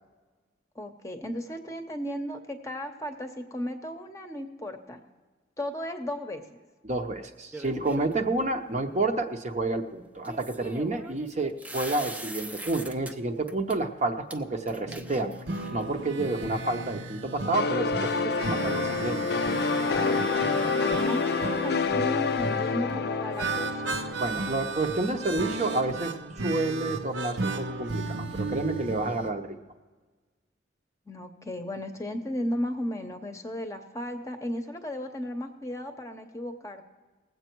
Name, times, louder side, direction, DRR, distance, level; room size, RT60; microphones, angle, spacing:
voice 1, 0.8-5.0 5.6-6.5 20.4-24.0 31.1-36.8, equal, 15° left, 5 dB, 0.8 m, -35 dB
voice 2, 6.8-15.4 15.7-19.2 24.2-29.6, right 2 dB, 35° right, 5 dB, 0.8 m, -29 dB
sound 1, 7.5-8.3 10.2-13.1 13.5-13.8 14.3-14.4 14.7-15.9, right 1 dB, 10° right, 0.5 m, -41 dB
sound 2, 14.9-29.3, right 3 dB, 80° right, 0.9 m, -34 dB
sound 3, 17.5-25.0, left 5 dB, 55° left, 0.4 m, -28 dB
19.5 x 8.0 x 4.5 m, 1.4 s
head